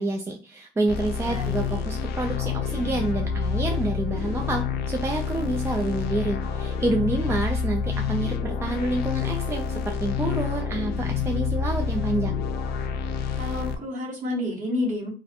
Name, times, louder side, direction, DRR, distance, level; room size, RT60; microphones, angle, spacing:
voice 1, 0.0-12.4, right 2 dB, 15° right, 2 dB, 0.4 m, -28 dB
sound 1, 0.9-13.8, left 6 dB, 70° left, 0.4 m, -28 dB
voice 2, 1.2-1.9 13.4-15.1, left 1 dB, 45° right, -1 dB, 1.2 m, -30 dB
2.5 x 2.1 x 2.7 m, 0.36 s
cardioid pair, 110°, 17 cm